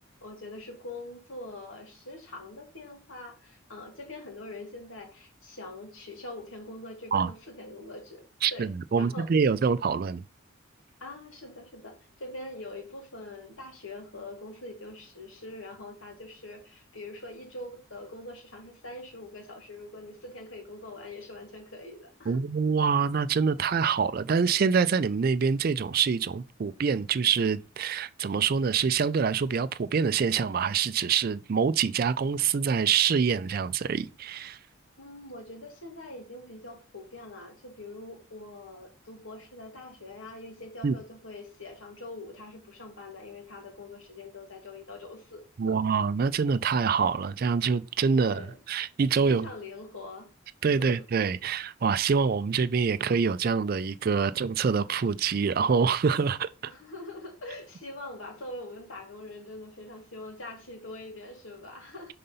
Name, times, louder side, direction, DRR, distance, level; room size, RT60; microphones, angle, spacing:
voice 1, 0.2-8.2 8.5-8.7 9.0-9.3 11.0-22.4 35.0-45.8 48.2-48.6 49.3-50.3 50.8-51.0 56.7-62.1, left 2 dB, 70° left, 2.1 m, -43 dB
voice 2, 8.4-10.2 22.3-34.6 40.8-40.9 45.6-49.5 50.6-56.5, right 6 dB, 45° right, 0.3 m, -25 dB
5.5 x 3.8 x 5.4 m
head